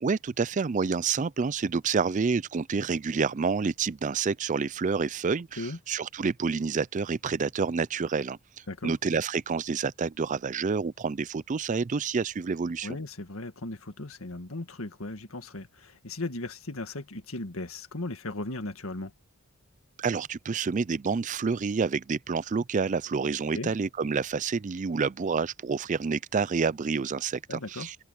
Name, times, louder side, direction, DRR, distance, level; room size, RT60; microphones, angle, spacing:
voice 1, 0.0-8.4 8.8-13.0 20.0-28.0, right 5 dB, 35° right, 0.4 m, -28 dB
voice 2, 12.8-19.1 23.5-23.7 27.5-27.9, left 2 dB, 70° left, 1.9 m, -37 dB
head